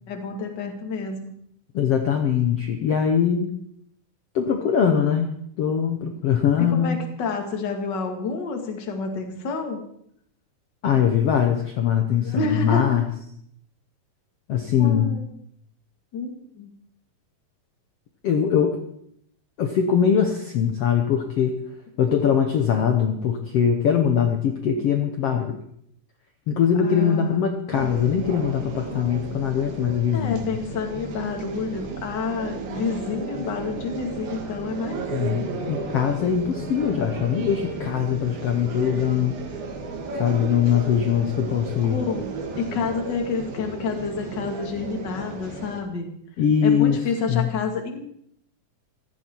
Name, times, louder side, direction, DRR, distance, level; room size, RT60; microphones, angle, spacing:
voice 1, 0.1-1.3 6.6-9.8 12.2-13.0 14.8-15.2 16.1-16.7 26.8-27.5 30.1-35.0 41.8-46.1 46.6-48.0, left 4 dB, 35° left, 3 dB, 2.1 m, -29 dB
voice 2, 1.7-3.5 4.3-5.3 5.6-7.0 10.8-13.0 14.5-15.1 18.2-18.8 19.6-21.6 22.0-25.6 26.5-30.5 35.1-39.4 40.2-42.0 46.4-47.0 47.3-47.5, left 8 dB, 75° left, 5 dB, 1.4 m, -22 dB
sound 1, 27.7-45.8, right 4 dB, 80° right, 4.1 m, -34 dB
16.0 x 14.0 x 4.6 m, 0.70 s
omnidirectional pair, 4.3 m